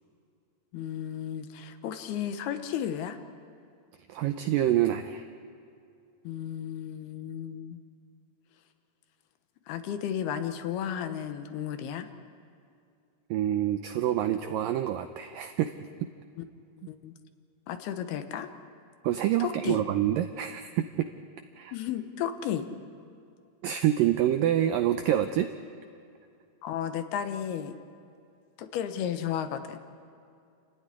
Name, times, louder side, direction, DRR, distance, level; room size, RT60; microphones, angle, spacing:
voice 1, 0.7-3.2 6.2-7.8 9.7-12.1 16.4-16.5 16.9-17.1 17.7-18.5 19.4-19.8 21.7-22.7 26.6-27.7 28.6-29.8, left 9 dB, 75° left, 9 dB, 2.9 m, -33 dB
voice 2, 4.1-5.2 13.3-15.7 19.0-21.1 21.6-21.7 23.6-25.5, right 12 dB, 85° right, 8 dB, 2.0 m, -26 dB
28.5 x 15.0 x 10.0 m, 2.5 s
omnidirectional pair, 4.9 m